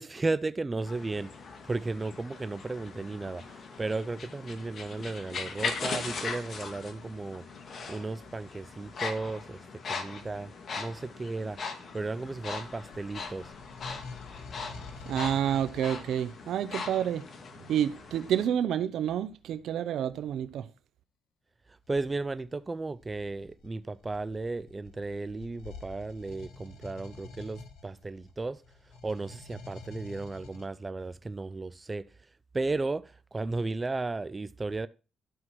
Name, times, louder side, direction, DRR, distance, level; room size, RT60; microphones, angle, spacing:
voice 1, 0.0-1.3 1.6-7.4 7.9-9.6 9.9-11.6 11.9-13.5 21.9-28.6 29.0-32.1 32.5-34.9, right 3 dB, 25° right, 0.5 m, -34 dB
sound 1, 0.8-18.5, left 4 dB, 50° left, 2.0 m, -40 dB
sound 2, 12.6-16.5 21.8-22.1 22.9-30.7, left 4 dB, 80° left, 1.6 m, -48 dB
voice 2, 15.1-17.2 17.7-20.7, right 10 dB, 75° right, 0.8 m, -29 dB
12.5 x 4.7 x 6.1 m
cardioid pair, 90°, 0 cm